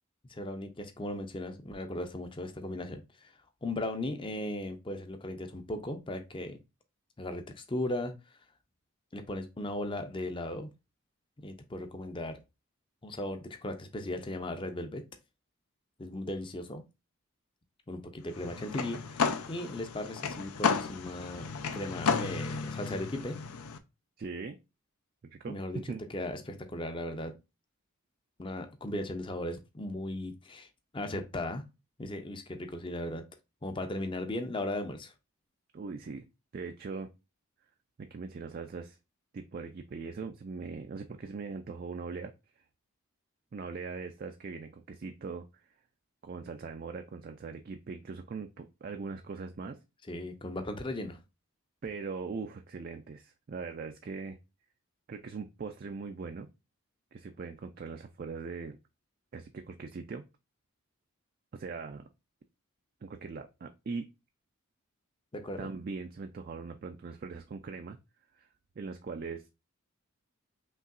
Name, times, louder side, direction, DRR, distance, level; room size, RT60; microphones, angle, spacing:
voice 1, 0.3-3.3 3.6-6.6 7.2-8.1 9.1-10.7 11.4-12.4 13.0-15.0 16.0-16.8 17.9-21.5 21.7-23.4 25.5-25.8 26.1-27.3 28.4-30.7 30.9-31.6 32.0-33.2 33.6-35.1 50.1-51.2 65.3-65.7, left 1 dB, 20° left, 7 dB, 0.5 m, -37 dB
sound 1, 18.3-23.8, left 5 dB, 80° left, 0.6 m, -33 dB
voice 2, 24.2-24.6 25.2-26.0 35.7-36.2 36.5-37.1 38.0-39.0 39.3-42.3 43.5-45.6 46.2-49.8 51.8-54.4 55.1-56.5 57.1-58.8 59.3-60.2 61.5-62.0 63.0-64.1 65.6-68.0 68.3-68.5 68.8-69.5, right 4 dB, 40° right, 6 dB, 0.3 m, -40 dB
5.4 x 3.0 x 2.4 m, 0.25 s
head